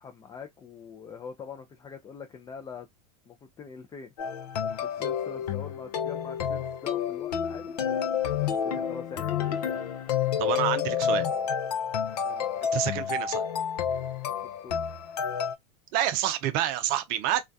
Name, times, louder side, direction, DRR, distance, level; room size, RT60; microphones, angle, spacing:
voice 1, 0.0-2.9 3.3-4.1 4.6-7.7 8.3-9.8 12.1-12.5 14.6-15.0, left 6 dB, 20° left, 0.4 m, -44 dB
sound 1, 4.2-15.5, left 8 dB, 80° left, 0.6 m, -29 dB
voice 2, 10.4-11.3 12.7-13.4 15.9-17.5, right 12 dB, 50° right, 0.5 m, -28 dB
2.3 x 2.2 x 2.5 m
hypercardioid pair, 100°, 20 cm